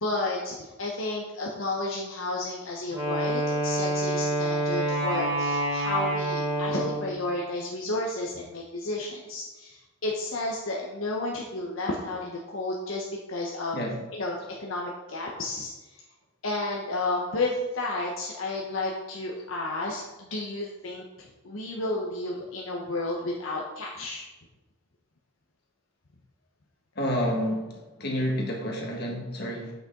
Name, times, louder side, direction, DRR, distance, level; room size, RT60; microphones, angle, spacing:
voice 1, 0.0-13.8 14.1-14.3 14.6-15.7 16.4-21.0 21.4-24.2, left 2 dB, 70° left, -2 dB, 1.0 m, -32 dB
Wind instrument woodwind instrument, 2.9-7.2, right 1 dB, 20° right, 2.9 m, -27 dB
voice 2, 27.0-29.7, equal, 50° left, -1 dB, 1.7 m, -29 dB
8.1 x 6.3 x 3.8 m, 1.1 s
head